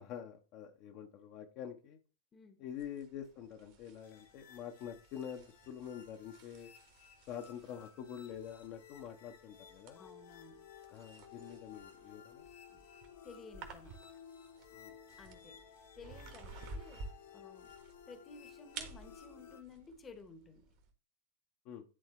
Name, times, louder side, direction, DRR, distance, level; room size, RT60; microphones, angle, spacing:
voice 1, 0.0-2.0 2.6-6.7 7.3-10.0 10.9-12.5 14.7-15.0 21.6-21.8, left 9 dB, 40° left, 0.9 m, -46 dB
voice 2, 2.3-2.6 9.9-10.8 12.7-12.9 13.2-14.1 15.2-17.7 18.1-20.7, left 3 dB, 20° left, 1.1 m, -55 dB
sound 1, 2.7-20.9, right 4 dB, 45° right, 1.5 m, -54 dB
sound 2, 4.0-19.6, left 8 dB, 60° left, 1.3 m, -57 dB
11.0 x 3.7 x 3.1 m
figure-of-eight pair, 90°, 0 cm